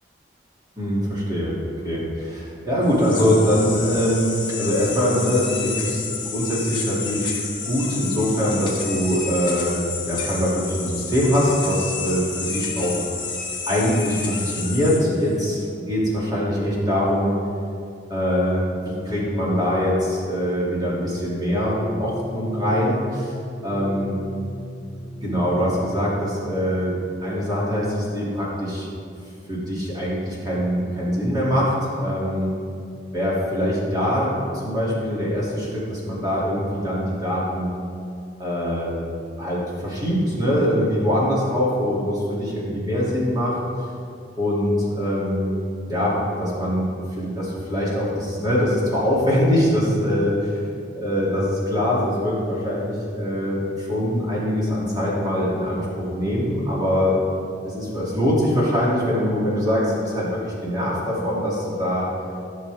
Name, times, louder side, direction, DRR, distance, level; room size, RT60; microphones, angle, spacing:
voice 1, 0.8-1.5 1.8-6.0 6.3-7.3 7.7-13.0 13.7-17.3 18.1-23.3 23.6-24.2 25.2-28.8 29.5-31.7 32.0-32.5 33.1-34.3 34.6-37.7 38.4-38.9 39.4-43.6 44.4-45.5 45.9-46.9 47.2-50.5 50.9-57.1 57.6-62.1, equal, 20° right, -6 dB, 2.6 m, -23 dB
sound 1, 2.8-15.7, left 5 dB, 25° left, 1.3 m, -30 dB
sound 2, 21.8-27.0, right 1 dB, 10° left, 0.7 m, -36 dB
15.5 x 6.5 x 3.5 m, 2.4 s
head